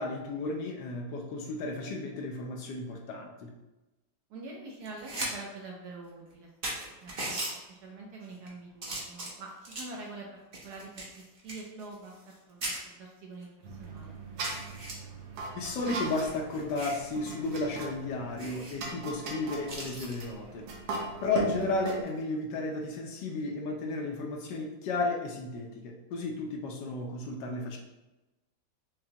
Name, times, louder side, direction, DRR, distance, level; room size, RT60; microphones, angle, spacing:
voice 1, 0.0-3.5 15.5-20.7 21.2-27.8, left 3 dB, 75° left, 1 dB, 1.1 m, -33 dB
voice 2, 4.3-6.5 7.0-10.3 10.6-14.2 21.3-21.4, right 3 dB, 70° right, -1 dB, 1.0 m, -45 dB
sound 1, 4.8-5.3 5.7-5.8 6.3-6.4 6.6-7.5 8.2-8.5 8.8-10.0 10.5-12.4 12.6-12.8 13.4-13.5 13.8-13.9 14.4-14.9 15.8-17.1 17.4-17.6 17.9-18.0 18.4-18.8 19.7-20.2 22.0-22.2, right 1 dB, 50° right, 0.6 m, -38 dB
sound 2, 13.6-22.0, right 3 dB, 85° right, 1.5 m, -39 dB
5.6 x 2.1 x 2.7 m, 1.0 s
omnidirectional pair, 2.1 m